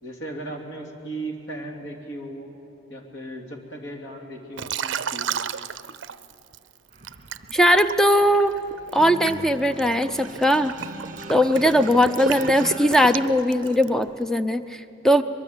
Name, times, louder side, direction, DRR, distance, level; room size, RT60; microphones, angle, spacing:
voice 1, 0.0-2.5 2.9-5.3 13.8-13.9, right 1 dB, 65° left, 2 dB, 2.8 m, -36 dB
Liquid, 4.6-6.6 7.1-14.0, right 6 dB, 65° right, 0.5 m, -32 dB
sound 1, 6.9-13.3, right 2 dB, 40° right, 1.9 m, -40 dB
voice 2, 7.5-8.5 8.9-10.7 11.3-15.2, equal, 5° left, 9 dB, 0.6 m, -19 dB
23.0 x 22.0 x 8.0 m, 2.7 s
head